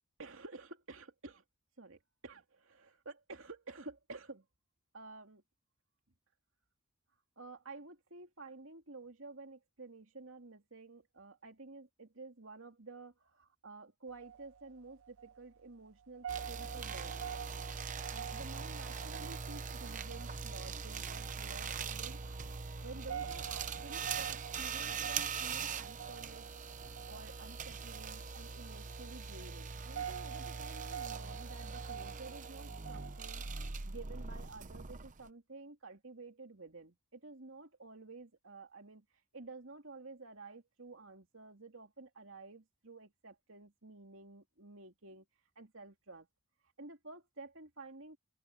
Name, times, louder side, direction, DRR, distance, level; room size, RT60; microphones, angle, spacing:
voice 1, 0.2-1.4 1.8-4.4 4.9-5.4 7.4-17.2 18.1-22.2 22.8-26.5 27.1-33.5 33.8-39.0 39.3-45.2 45.6-46.3 46.8-48.2, right 3 dB, 65° right, 2.8 m, -51 dB
sound 1, 14.1-33.7, right 9 dB, 90° right, 0.8 m, -48 dB
sound 2, 16.3-35.3, right 5 dB, 35° right, 0.8 m, -42 dB
open air
head